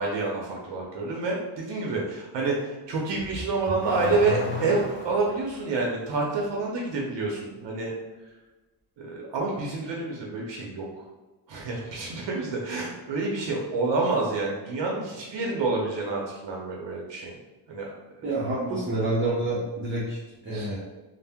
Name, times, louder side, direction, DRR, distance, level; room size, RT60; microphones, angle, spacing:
voice 1, 0.0-7.9 9.0-10.9 11.5-17.3 17.7-17.9 18.4-18.8 20.5-20.7, right 3 dB, 75° right, -2 dB, 0.7 m, -28 dB
Car / Accelerating revving vroom, 3.1-5.4, left 2 dB, 25° left, 0.5 m, -33 dB
voice 2, 18.2-20.8, right 2 dB, 30° right, -8 dB, 0.6 m, -28 dB
2.7 x 2.1 x 3.4 m, 1.1 s
wide cardioid pair, 145°, 44 cm